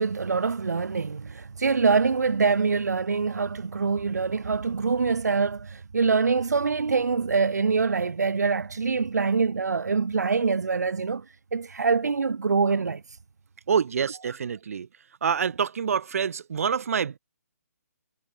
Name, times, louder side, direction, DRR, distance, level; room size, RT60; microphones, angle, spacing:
voice 1, 0.0-11.2 11.5-13.0, right 4 dB, 75° right, 4.7 m, -24 dB
voice 2, 13.7-14.9 15.2-17.2, right 7 dB, 60° right, 6.3 m, -26 dB
hypercardioid pair, 155°, 9 cm